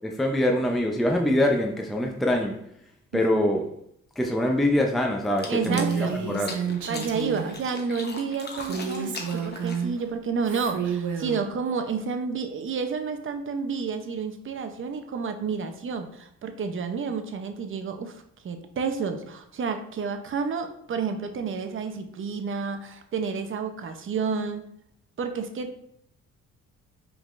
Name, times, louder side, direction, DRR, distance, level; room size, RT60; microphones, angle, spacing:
voice 1, 0.0-2.8 3.1-3.7 4.2-6.6, left 1 dB, ahead, 0.5 m, -24 dB
sound 1, 5.2-10.1, left 3 dB, 35° left, 0.9 m, -40 dB
voice 2, 5.5-6.2 6.9-18.2 18.4-24.6 25.2-25.8, right 5 dB, 45° right, 0.6 m, -30 dB
Female speech woman speaking, 5.6-7.6 8.6-10.0 10.4-11.4, right 6 dB, 80° right, 0.7 m, -30 dB
5.0 x 3.6 x 2.5 m
cardioid pair, 90°, 30 cm